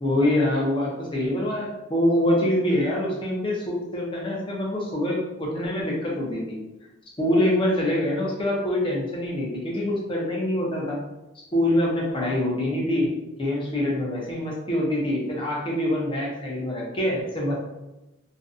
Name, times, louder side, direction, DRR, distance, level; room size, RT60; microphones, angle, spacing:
voice 1, 0.0-6.6 7.2-11.0 11.5-13.1 13.4-17.6, left 1 dB, 25° left, -3 dB, 0.6 m, -25 dB
2.5 x 2.2 x 2.5 m, 0.98 s
head